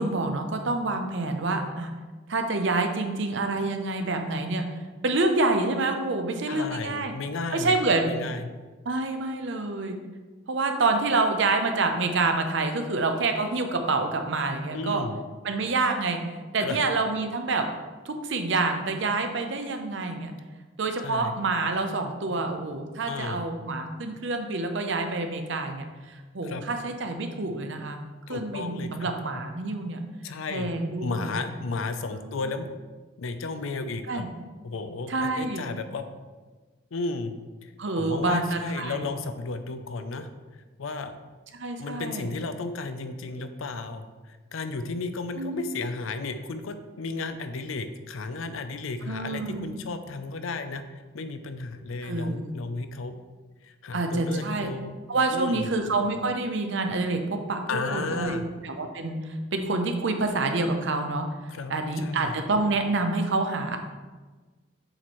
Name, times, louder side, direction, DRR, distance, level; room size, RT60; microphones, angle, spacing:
voice 1, 0.0-1.9 2.3-4.6 5.0-7.1 7.5-8.1 8.9-10.0 10.5-15.0 15.4-16.2 16.5-17.7 18.1-20.3 20.8-25.8 26.3-28.0 28.3-30.0 30.5-31.4 32.1-32.3 34.1-34.3 35.1-35.6 37.8-39.1 41.5-42.3 45.4-45.6 49.0-49.7 52.0-52.5 53.9-54.7 55.1-61.3 61.7-63.8, right 3 dB, 60° right, 5 dB, 0.6 m, -27 dB
voice 2, 6.5-7.7 8.1-8.5 14.7-15.2 16.6-16.8 21.0-21.4 23.1-23.4 26.4-26.6 28.3-29.1 30.2-30.7 31.0-32.7 33.2-34.2 34.6-36.0 36.9-37.4 37.6-37.7 38.0-40.3 40.8-41.1 41.8-50.8 51.1-53.2 53.6-54.9 55.3-55.7 57.7-58.5 61.5-62.3, left 3 dB, 75° left, 9 dB, 0.5 m, -33 dB
7.7 x 3.1 x 4.2 m, 1.3 s
head